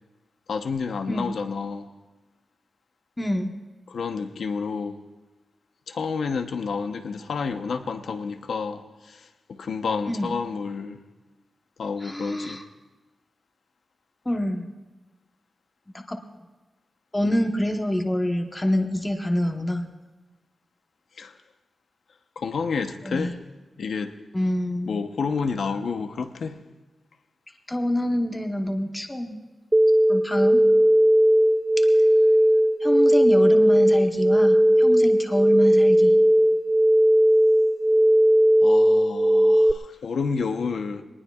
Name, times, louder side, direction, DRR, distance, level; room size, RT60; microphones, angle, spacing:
voice 1, 0.5-1.9 3.9-5.0 5.9-11.0 11.8-12.6 21.2-21.3 22.4-23.4 23.8-24.1 24.9-26.6 38.6-41.0, left 5 dB, 90° left, 0.9 m, -30 dB
voice 2, 3.2-3.5 10.1-10.3 12.0-12.6 14.2-14.6 15.9-16.2 17.1-19.9 23.0-23.3 24.3-25.0 27.7-29.4 30.1-30.6 31.8-31.9 32.8-36.1, left 1 dB, 15° left, 1.0 m, -26 dB
sound 1, 29.7-39.7, equal, 15° right, 0.4 m, -17 dB
22.5 x 19.5 x 2.4 m
wide cardioid pair, 120°, 0 cm